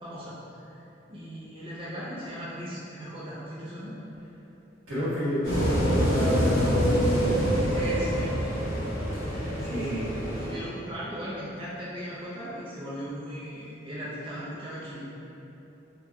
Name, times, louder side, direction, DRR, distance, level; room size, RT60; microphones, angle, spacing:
voice 1, 0.0-4.0 7.7-8.4 9.6-15.1, equal, 25° right, -9 dB, 0.4 m, -38 dB
voice 2, 4.9-7.1 9.2-10.2, equal, 90° right, -11 dB, 1.4 m, -30 dB
sound 1, 5.4-10.5, equal, 80° left, 1.1 m, -26 dB
3.5 x 2.1 x 2.9 m, 3.0 s
head